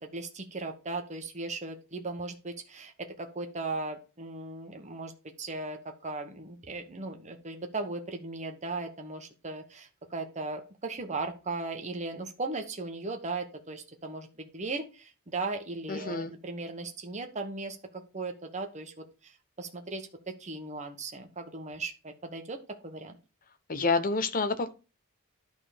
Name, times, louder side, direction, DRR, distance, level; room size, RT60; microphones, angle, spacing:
voice 1, 0.0-5.1 5.4-23.2, right 3 dB, 30° right, 5 dB, 1.1 m, -37 dB
voice 2, 15.9-16.3 23.7-24.7, left 3 dB, 40° left, 10 dB, 0.8 m, -28 dB
11.0 x 3.9 x 5.0 m, 0.32 s
head